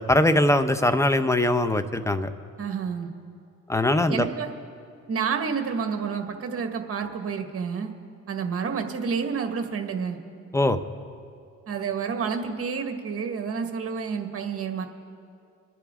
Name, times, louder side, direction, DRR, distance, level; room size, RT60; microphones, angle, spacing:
voice 1, 0.0-2.3 3.7-4.3 10.5-10.8, left 1 dB, 10° left, 10 dB, 0.8 m, -21 dB
voice 2, 2.6-3.1 4.1-4.5 5.1-7.9 8.3-10.2 11.7-14.9, right 6 dB, 50° right, 5 dB, 1.7 m, -29 dB
26.5 x 10.5 x 3.7 m, 2.4 s
cardioid pair, 90°, 30 cm